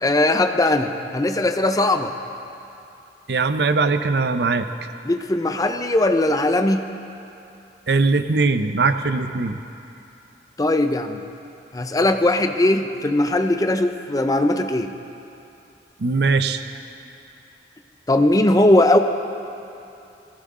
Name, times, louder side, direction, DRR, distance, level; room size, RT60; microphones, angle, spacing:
voice 1, 0.0-2.1 5.1-6.8 10.6-11.2 11.7-14.9 18.1-19.0, left 1 dB, 20° left, 7 dB, 0.6 m, -19 dB
voice 2, 3.3-4.7 7.9-9.6 16.0-16.6, right 3 dB, 65° right, 10 dB, 0.6 m, -20 dB
20.0 x 16.0 x 3.7 m, 2.7 s
head